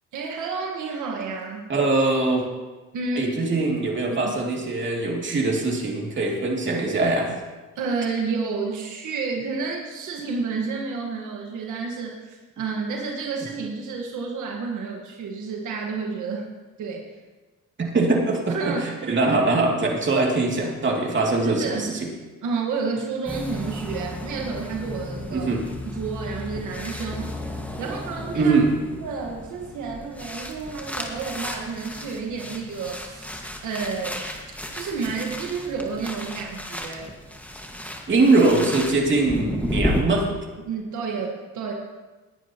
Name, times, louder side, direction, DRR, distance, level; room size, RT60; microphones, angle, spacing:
voice 1, 0.1-1.7 2.9-3.3 4.2-4.3 7.7-16.5 16.8-17.2 18.5-18.9 19.2-19.4 21.4-21.9 22.4-25.5 25.9-27.5 27.8-28.5 29.0-34.3 34.7-37.1 40.6-41.7, right 4 dB, 80° right, 0 dB, 1.6 m, -30 dB
voice 2, 1.7-2.4 3.2-7.3 17.8-18.7 19.1-21.9 25.3-25.6 28.3-28.7 38.1-40.2, right 3 dB, 40° right, -1 dB, 2.7 m, -22 dB
sound 1, 23.3-40.0, left 1 dB, 5° left, 1.8 m, -33 dB
19.5 x 9.7 x 3.0 m, 1.2 s
cardioid pair, 90°, 30 cm